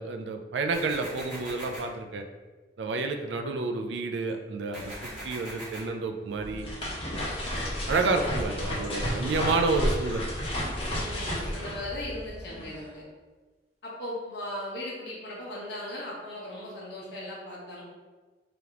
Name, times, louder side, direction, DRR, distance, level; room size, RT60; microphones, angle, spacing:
voice 1, 0.0-2.3 2.8-5.0 5.2-6.7 7.9-10.2, right 3 dB, 80° right, 5 dB, 0.4 m, -29 dB
sound 1, 0.7-1.8 4.7-5.8, equal, 5° right, 1.5 m, -41 dB
sound 2, 4.3-4.4 4.7-5.4 6.4-8.4 10.4-10.9 12.1-12.2 12.5-13.1, right 1 dB, 35° right, 0.9 m, -50 dB
sound 3, 6.3-12.6, equal, 30° left, 1.0 m, -32 dB
voice 2, 8.5-9.1 10.9-13.0 13.8-17.8, left 1 dB, 75° left, -5 dB, 1.2 m, -38 dB
3.4 x 2.9 x 3.6 m, 1.3 s
head